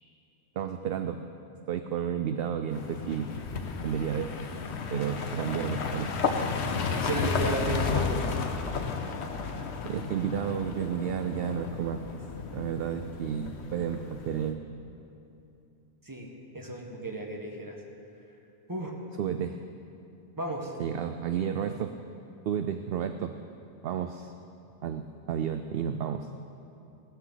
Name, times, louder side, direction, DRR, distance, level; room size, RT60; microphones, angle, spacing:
voice 1, 0.6-1.2 1.7-3.3 3.8-4.3 4.9-6.1 9.8-12.2 12.5-14.6 19.2-19.6 20.8-21.9 22.5-23.4 23.8-24.3 24.8-26.3, right 8 dB, 65° right, 8 dB, 0.7 m, -31 dB
sound 1, 2.7-14.5, left 5 dB, 65° left, 1.1 m, -33 dB
voice 2, 6.9-8.2 16.1-16.3 16.5-17.8 18.7-19.0 20.4-20.7, right 2 dB, 15° right, 1 dB, 1.3 m, -33 dB
17.5 x 13.0 x 4.0 m, 2.7 s
omnidirectional pair, 1.2 m